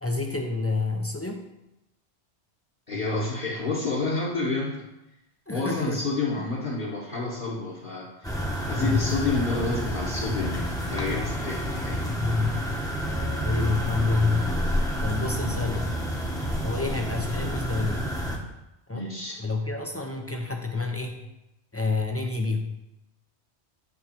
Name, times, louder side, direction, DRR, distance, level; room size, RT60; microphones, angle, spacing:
voice 1, 0.0-1.4 5.5-6.0 6.4-6.5 8.8-9.1 12.1-12.6 13.4-14.5 15.0-15.9 16.6-18.1 18.9-21.2 21.7-22.7, left 3 dB, 25° left, 2 dB, 0.3 m, -28 dB
voice 2, 2.9-4.8 5.5-8.3 8.7-12.0 15.4-15.6 16.8-16.9 18.9-19.4, left 3 dB, 50° left, -5 dB, 1.3 m, -29 dB
sound 1, 8.2-18.4, equal, 5° left, 0.8 m, -29 dB
9.7 x 3.3 x 4.4 m, 0.91 s
omnidirectional pair, 1.2 m